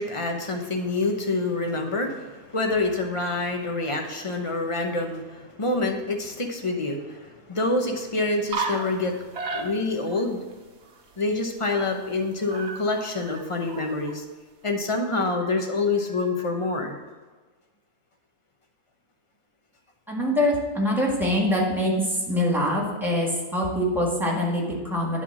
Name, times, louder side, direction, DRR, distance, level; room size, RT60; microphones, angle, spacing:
voice 1, 0.0-9.2 9.5-10.4 11.2-14.2 14.6-17.0, left 2 dB, 30° left, 3 dB, 0.6 m, -27 dB
sound 1, 8.5-9.1 9.3-10.2 10.5-10.6 10.8-12.1 12.4-14.1, right 4 dB, 50° right, 1.1 m, -34 dB
voice 2, 20.1-21.9 22.3-25.2, left 1 dB, ahead, -3 dB, 1.5 m, -24 dB
9.5 x 3.8 x 6.0 m, 1.3 s
omnidirectional pair, 1.6 m